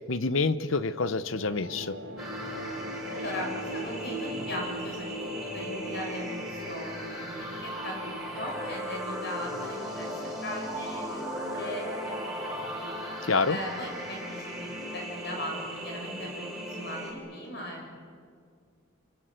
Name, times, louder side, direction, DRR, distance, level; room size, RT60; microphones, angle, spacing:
voice 1, 0.0-2.0 13.3-13.6, left 3 dB, 70° left, 14 dB, 1.0 m, -27 dB
sound 1, 1.1-16.0, equal, 75° right, 3.5 m, -42 dB
sound 2, 2.2-17.1, equal, ahead, 6.4 m, -37 dB
voice 2, 3.1-5.1 5.4-10.1 10.4-11.8 12.4-12.9 13.5-18.0, left 1 dB, 50° left, 0 dB, 7.0 m, -39 dB
28.0 x 25.5 x 7.8 m, 2.1 s
head